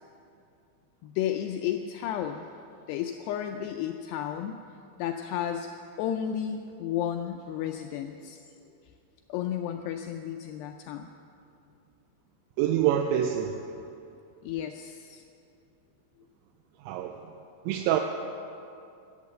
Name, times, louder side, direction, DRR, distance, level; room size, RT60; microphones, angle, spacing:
voice 1, 1.0-2.5 2.9-4.6 5.0-5.7 6.0-8.4 9.3-11.1 14.4-15.2, left 10 dB, 85° left, 5 dB, 2.3 m, -32 dB
voice 2, 12.6-13.6 16.9-17.2 17.7-18.0, right 10 dB, 85° right, 5 dB, 2.8 m, -25 dB
13.0 x 11.0 x 7.4 m, 2.6 s
omnidirectional pair, 5.3 m